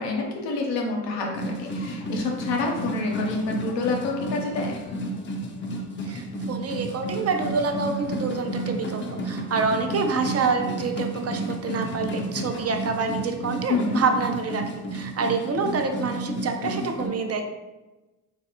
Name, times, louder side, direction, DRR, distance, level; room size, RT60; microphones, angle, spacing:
voice 1, 0.0-4.8 13.7-14.0, left 3 dB, 80° left, 0 dB, 0.7 m, -27 dB
sound 1, 1.3-17.1, right 1 dB, 30° left, 0.5 m, -32 dB
voice 2, 6.0-14.6 14.9-17.4, right 4 dB, 35° right, 5 dB, 0.5 m, -27 dB
3.3 x 2.2 x 2.8 m, 1.1 s
supercardioid pair, 45°, 42 cm